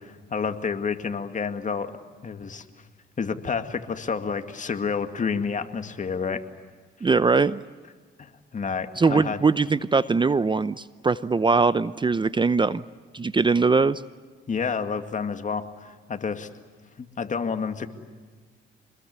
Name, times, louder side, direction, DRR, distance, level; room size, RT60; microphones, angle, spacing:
voice 1, 0.0-1.9 2.2-2.7 3.2-6.4 8.2-9.4 14.5-16.5 17.0-17.9, left 5 dB, 40° left, 7 dB, 2.2 m, -29 dB
voice 2, 7.0-7.6 9.0-12.8 13.1-14.0, right 4 dB, 25° right, 15 dB, 0.7 m, -21 dB
26.5 x 21.5 x 9.6 m, 1.5 s
cardioid pair, 90°, 20 cm